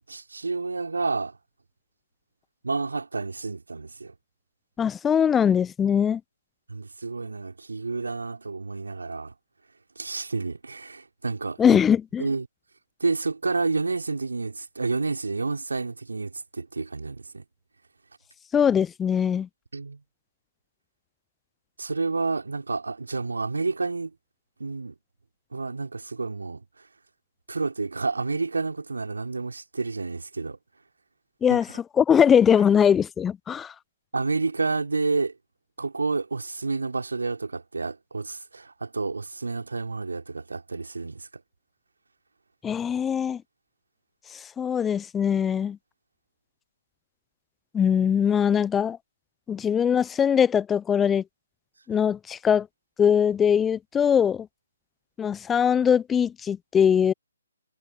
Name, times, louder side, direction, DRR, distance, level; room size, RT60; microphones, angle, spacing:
voice 1, 0.1-1.3 2.6-4.1 6.7-9.3 10.0-11.8 12.2-12.5 13.0-17.4 19.7-20.0 21.8-24.1 24.6-24.9 25.5-26.6 27.5-30.6 31.5-31.6 34.1-35.3 35.8-41.3, right 3 dB, 70° right, 4.2 m, -29 dB
voice 2, 4.8-6.2 11.6-12.2 18.5-19.5 31.4-33.7 42.6-43.4 44.3-45.8 47.7-49.0 49.5-51.2 51.9-52.7 53.0-54.5 55.2-57.1, left 8 dB, 10° left, 0.6 m, -21 dB
figure-of-eight pair, 140°, 0 cm